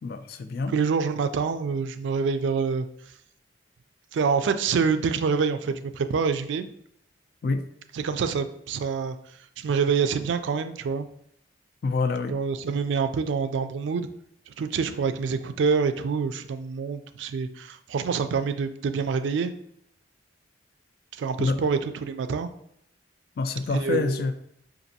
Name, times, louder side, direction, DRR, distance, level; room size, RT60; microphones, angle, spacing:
voice 1, 0.0-0.7 7.4-7.6 11.8-12.4 21.4-21.6 23.4-24.3, left 3 dB, 55° left, 9 dB, 0.3 m, -26 dB
voice 2, 0.7-2.9 4.1-6.7 7.9-9.2 9.6-11.1 12.3-14.1 14.5-19.5 21.1-22.5 23.7-24.3, right 5 dB, 75° right, 10 dB, 0.3 m, -26 dB
5.1 x 2.5 x 2.7 m, 0.72 s
head